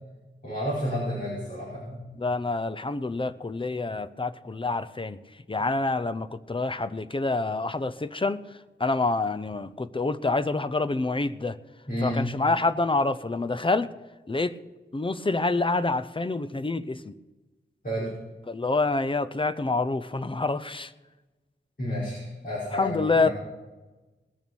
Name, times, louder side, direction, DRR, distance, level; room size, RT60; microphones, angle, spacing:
voice 1, 0.4-2.0 11.9-12.2 17.8-18.1 21.8-23.3, equal, 45° left, -8 dB, 5.2 m, -31 dB
voice 2, 2.2-5.2 5.5-11.6 12.0-13.9 14.3-14.6 14.9-17.1 18.5-20.9 22.7-23.3, left 3 dB, 25° left, 12 dB, 0.6 m, -27 dB
20.0 x 6.9 x 6.2 m, 1.2 s
wide cardioid pair, 90°, 20 cm